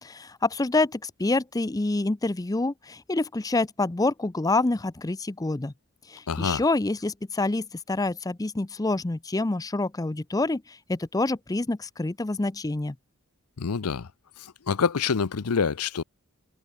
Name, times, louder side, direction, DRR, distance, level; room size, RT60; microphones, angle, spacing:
voice 1, 0.0-5.7 6.1-12.9, left 2 dB, 15° left, 0.5 m, -27 dB
voice 2, 6.3-6.6 13.6-14.1 14.4-16.0, left 5 dB, 80° left, 0.7 m, -26 dB
head